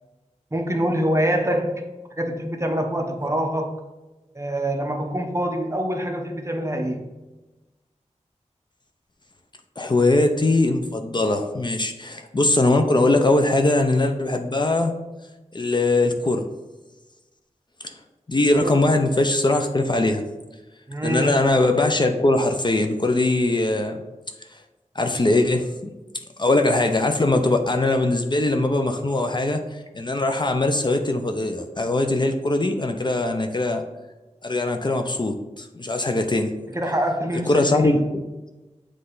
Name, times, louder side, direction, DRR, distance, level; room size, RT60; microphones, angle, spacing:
voice 1, 0.5-1.9 2.2-3.8 4.3-7.1 18.6-18.8 20.9-21.4 36.7-38.1, right 1 dB, 25° right, 3 dB, 0.7 m, -25 dB
voice 2, 9.8-14.9 15.5-16.5 17.8-18.0 18.3-20.2 21.0-24.0 24.5-24.6 24.9-25.9 26.4-33.8 34.4-36.5 37.5-38.0, left 2 dB, 35° left, 4 dB, 0.6 m, -21 dB
7.7 x 3.2 x 3.9 m, 1.1 s
wide cardioid pair, 70°, 13 cm